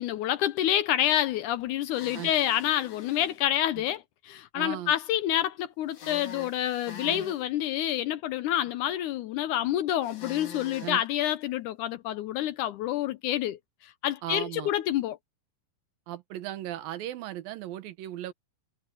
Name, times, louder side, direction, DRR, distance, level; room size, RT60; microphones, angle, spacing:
voice 1, 0.0-15.2, left 12 dB, 75° left, 2.0 m, -28 dB
sound 1, 1.9-3.4 5.9-7.4 10.0-11.0, left 6 dB, 55° left, 3.6 m, -44 dB
voice 2, 4.5-4.9 7.0-7.2 10.8-11.0 14.2-14.7 16.1-18.3, right 13 dB, 80° right, 2.9 m, -37 dB
omnidirectional pair, 4.0 m